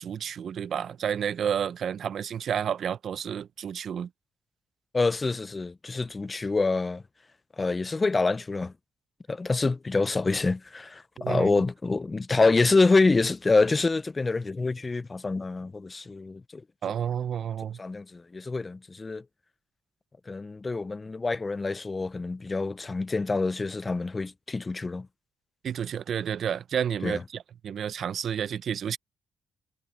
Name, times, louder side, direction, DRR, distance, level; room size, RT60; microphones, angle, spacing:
voice 1, 0.0-4.1 11.2-11.5 16.8-17.8 25.6-29.0, right 8 dB, 60° right, 0.5 m, -30 dB
voice 2, 4.9-7.0 7.6-8.7 9.3-16.6 17.8-19.2 20.3-25.1 27.0-27.2, left 3 dB, 25° left, 0.4 m, -26 dB
cardioid pair, 115°, 0 cm